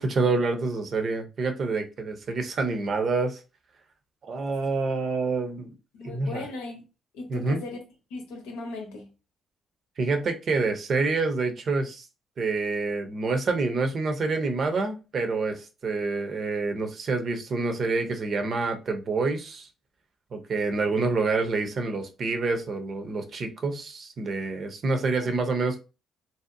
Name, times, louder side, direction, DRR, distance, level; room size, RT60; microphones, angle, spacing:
voice 1, 0.0-3.4 4.2-5.7 6.0-6.5 7.3-7.6 10.0-12.1 12.4-19.7 20.3-25.8, right 3 dB, 55° right, 0.6 m, -27 dB
voice 2, 6.0-6.8 7.1-7.8 8.1-9.1 25.2-25.3, left 3 dB, 85° left, 0.7 m, -37 dB
2.7 x 2.0 x 2.5 m
supercardioid pair, 60°, 0 cm